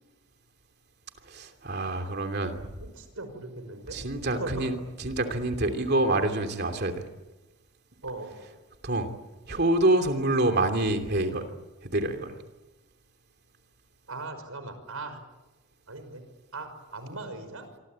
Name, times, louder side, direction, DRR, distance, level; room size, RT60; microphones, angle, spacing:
voice 1, 1.2-2.7 3.9-7.1 8.8-9.1 9.5-11.4 11.8-12.4, right 1 dB, 45° right, 6 dB, 2.9 m, -26 dB
voice 2, 2.8-4.0 4.4-4.9 8.0-8.5 14.1-15.2 15.9-16.2 16.5-17.7, right 2 dB, 75° right, 9 dB, 5.6 m, -39 dB
27.0 x 23.5 x 8.9 m, 1.1 s
head